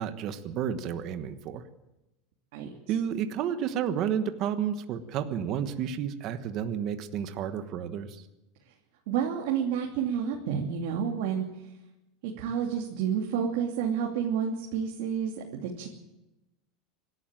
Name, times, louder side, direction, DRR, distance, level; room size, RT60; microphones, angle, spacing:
voice 1, 0.0-1.6 2.9-8.2, right 8 dB, 35° right, 9 dB, 1.2 m, -31 dB
voice 2, 9.1-11.4 12.2-15.9, right 7 dB, 60° right, 0 dB, 2.8 m, -30 dB
26.0 x 12.0 x 9.0 m, 0.98 s
supercardioid pair, 175°, 0 cm